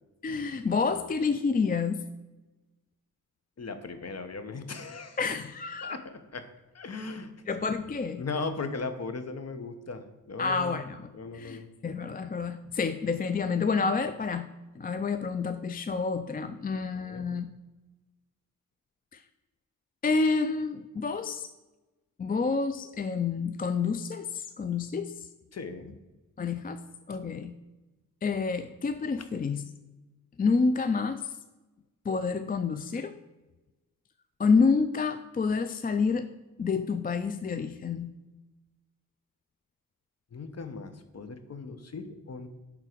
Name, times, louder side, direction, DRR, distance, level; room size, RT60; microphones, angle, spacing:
voice 1, 0.2-2.1 5.2-5.9 7.5-8.2 10.4-14.5 14.8-17.5 19.1-19.2 20.0-21.5 22.2-25.1 26.4-26.8 27.1-27.5 28.2-29.6 30.4-31.2 32.1-33.2 34.4-36.3 36.6-38.2, left 4 dB, 25° left, 10 dB, 0.4 m, -28 dB
voice 2, 3.6-5.2 5.8-6.4 6.7-7.3 8.2-10.9 11.1-11.7 16.7-17.2 25.5-26.0 27.1-27.2 29.2-29.3 40.3-42.5, left 4 dB, 45° left, 9 dB, 1.0 m, -38 dB
11.0 x 3.8 x 4.5 m, 1.1 s
cardioid pair, 65°, 36 cm